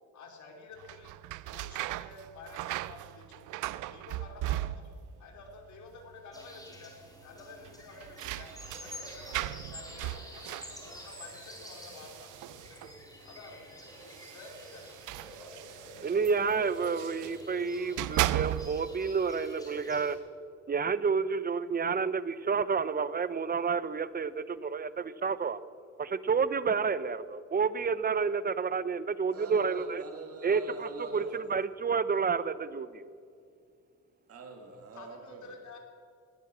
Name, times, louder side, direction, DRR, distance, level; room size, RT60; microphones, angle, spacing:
voice 1, 0.1-1.2 1.4-4.9 5.2-6.9 7.2-8.5 8.8-12.8 13.2-15.0 15.4-15.6 34.9-35.8, left 3 dB, 70° left, 2 dB, 3.4 m, -50 dB
sound 1, 0.8-5.2 5.5-6.1 6.4-6.5 7.6-13.0 13.9-17.4 17.8-19.0, right 16 dB, 85° right, 0.5 m, -37 dB
sound 2, 6.3-20.2, left 1 dB, 10° left, 4.8 m, -48 dB
voice 2, 16.0-20.2 20.7-25.6 26.0-30.0 30.4-33.1, right 5 dB, 30° right, 16 dB, 0.7 m, -30 dB
voice 3, 29.3-31.3 34.3-35.6, right 3 dB, 50° right, 3 dB, 2.3 m, -45 dB
19.5 x 9.2 x 7.3 m, 2.3 s
cardioid pair, 90°, 30 cm